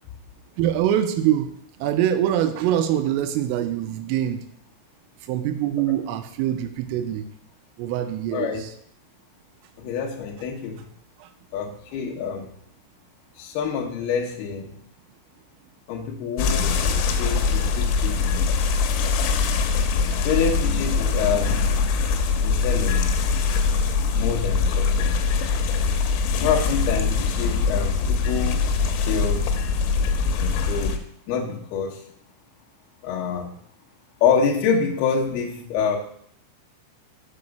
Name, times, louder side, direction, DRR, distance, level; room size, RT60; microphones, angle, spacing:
voice 1, 0.6-1.5 1.8-4.4 5.2-7.3 7.8-8.7 11.2-11.3, right 11 dB, 90° right, 8 dB, 3.3 m, -24 dB
voice 2, 8.3-8.6 9.8-10.8 11.5-12.5 13.4-14.7 15.9-16.8 17.2-18.4 20.2-21.8 22.4-23.1 24.1-25.1 26.4-28.6 29.1-29.5 30.4-31.0 31.3-32.0 33.0-33.5 34.2-36.0, left 6 dB, 65° left, -1 dB, 2.7 m, -26 dB
sound 1, 16.4-31.0, left 5 dB, 85° left, 3.5 m, -22 dB
7.0 x 5.3 x 6.5 m, 0.64 s
omnidirectional pair, 5.9 m